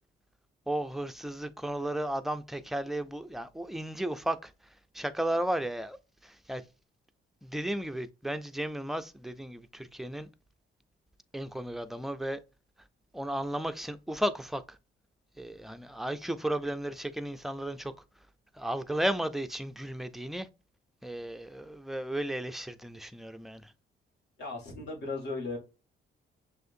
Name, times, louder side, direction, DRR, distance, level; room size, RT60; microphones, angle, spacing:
voice 1, 0.7-4.5 4.9-6.0 6.2-6.6 7.4-10.3 11.3-12.4 13.1-14.6 15.4-17.9 18.6-20.5 21.0-23.7, right 1 dB, ahead, 0.4 m, -34 dB
voice 2, 24.4-25.6, left 3 dB, 60° left, 1.8 m, -36 dB
6.3 x 2.5 x 2.6 m
cardioid pair, 90°, 20 cm